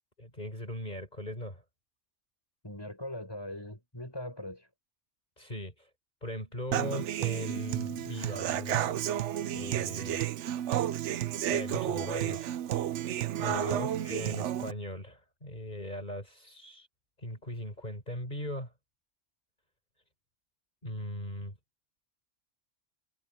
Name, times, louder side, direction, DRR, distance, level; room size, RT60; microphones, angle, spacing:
voice 1, 0.2-1.6 5.4-5.9 6.2-9.0 9.5-10.2 11.5-12.5 13.4-16.9 17.2-18.7 20.8-21.5, left 1 dB, 40° left, 6.5 m, -39 dB
voice 2, 2.6-4.7 13.5-13.8, left 1 dB, 20° left, 7.6 m, -40 dB
Human voice / Acoustic guitar, 6.7-14.7, right 11 dB, 80° right, 1.0 m, -32 dB
omnidirectional pair, 1.2 m